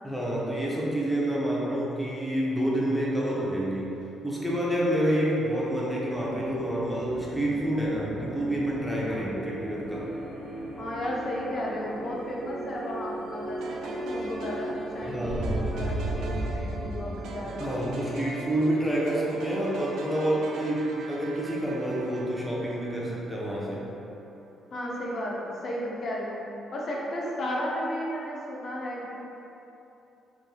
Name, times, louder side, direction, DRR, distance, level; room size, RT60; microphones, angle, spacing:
voice 1, 0.0-3.9 4.2-10.1 15.0-15.6 17.6-23.8, right 1 dB, ahead, -6 dB, 0.7 m, -28 dB
sound 1, 6.0-19.5, right 1 dB, 30° right, 1.1 m, -36 dB
voice 2, 10.8-17.7 24.7-26.4 26.7-29.2, equal, 55° left, -4 dB, 0.6 m, -34 dB
sound 2, 13.6-23.9, right 2 dB, 80° right, 0.4 m, -42 dB
4.2 x 3.2 x 2.2 m, 3.0 s
cardioid pair, 90°, 0 cm